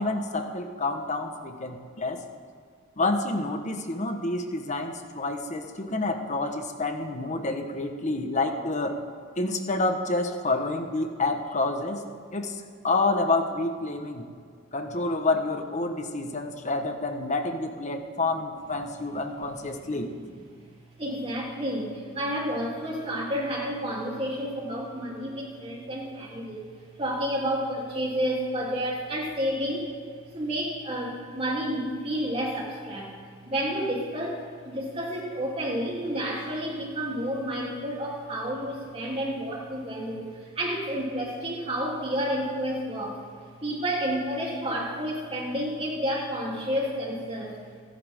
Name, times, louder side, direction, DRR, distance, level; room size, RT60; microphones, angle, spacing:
voice 1, 0.0-2.2 3.0-9.0 9.4-12.0 12.3-12.5 12.8-14.3 14.7-20.1, left 2 dB, 40° left, 5 dB, 1.4 m, -28 dB
voice 2, 21.0-26.7 27.0-29.9 30.3-33.1 33.4-43.2 43.6-47.6, equal, 30° right, -3 dB, 3.4 m, -30 dB
28.5 x 11.5 x 3.8 m, 2.1 s
head